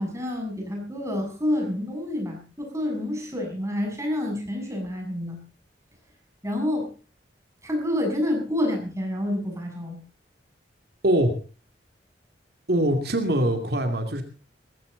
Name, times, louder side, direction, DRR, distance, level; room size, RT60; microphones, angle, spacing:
voice 1, 0.0-5.4 6.4-6.9 7.6-10.0, left 1 dB, 15° right, 2 dB, 7.0 m, -28 dB
voice 2, 12.7-14.2, right 1 dB, 60° right, 5 dB, 2.6 m, -22 dB
19.5 x 15.5 x 4.0 m, 0.36 s
head